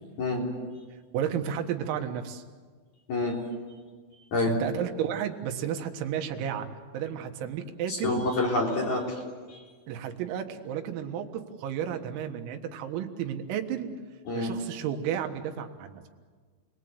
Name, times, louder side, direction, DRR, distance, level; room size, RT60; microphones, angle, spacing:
voice 1, 1.1-2.4 4.5-6.7 6.9-8.3 9.9-13.9 14.3-16.1, right 9 dB, 90° right, 4 dB, 4.2 m, -32 dB
voice 2, 7.9-9.2 9.5-9.6 14.3-14.5, left 2 dB, 40° left, -2 dB, 4.7 m, -27 dB
30.0 x 21.0 x 8.0 m, 1.5 s
omnidirectional pair, 5.9 m